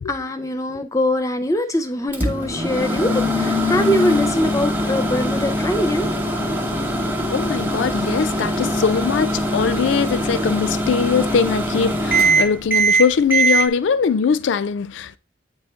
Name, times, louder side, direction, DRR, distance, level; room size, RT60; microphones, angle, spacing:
voice 1, 0.1-6.1 8.5-8.6, left 1 dB, 15° left, 0.4 m, -22 dB
Microwave oven, 2.1-13.7, right 1 dB, 10° right, 0.8 m, -21 dB
voice 2, 7.3-15.2, left 6 dB, 80° left, 0.4 m, -21 dB
8.3 x 3.8 x 3.6 m
head